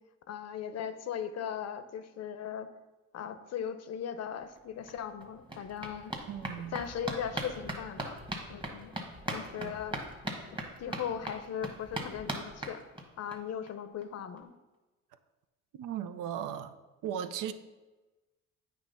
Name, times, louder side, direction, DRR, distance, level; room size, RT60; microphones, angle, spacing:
voice 1, 0.3-2.7 3.1-6.1 6.7-8.2 8.5-8.9 9.3-10.0 10.8-12.8 13.2-14.5, left 8 dB, 50° left, 0.6 m, -38 dB
sound 1, 4.6-4.7 4.9-13.4 13.7-13.8 14.0-14.1 14.4-14.5, right 1 dB, 15° right, 1.3 m, -40 dB
voice 2, 6.3-6.8 9.6-9.7 15.7-16.7 17.0-17.5, right 9 dB, 70° right, 0.6 m, -36 dB
8.5 x 3.1 x 5.4 m
supercardioid pair, 70°, 33 cm